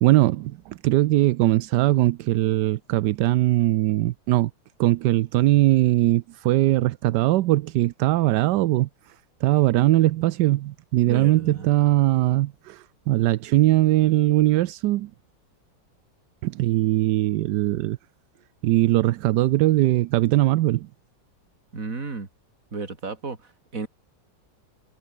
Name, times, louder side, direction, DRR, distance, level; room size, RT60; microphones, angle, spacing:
voice 1, 0.0-4.5 4.8-9.1 9.4-15.1 16.4-18.0 18.6-20.9, right 16 dB, 75° right, 1.1 m, -20 dB
voice 2, 11.1-11.7 21.7-22.3 22.7-23.9, right 4 dB, 45° right, 3.3 m, -33 dB
omnidirectional pair, 2.0 m